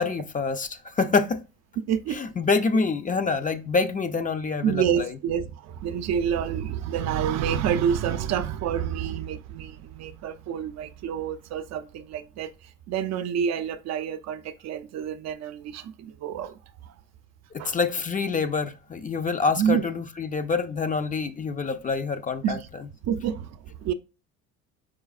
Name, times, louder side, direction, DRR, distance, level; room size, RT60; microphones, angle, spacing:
voice 1, 0.0-1.4 2.1-5.1 17.5-22.6, left 4 dB, 25° left, 0.5 m, -26 dB
voice 2, 1.9-2.2 4.6-12.5 12.9-16.5 16.9-17.0 17.6-17.8 19.6-19.8 22.4-22.7 23.0-23.9, right 8 dB, 55° right, 0.5 m, -28 dB
4.9 x 4.5 x 2.4 m
supercardioid pair, 85°, 32 cm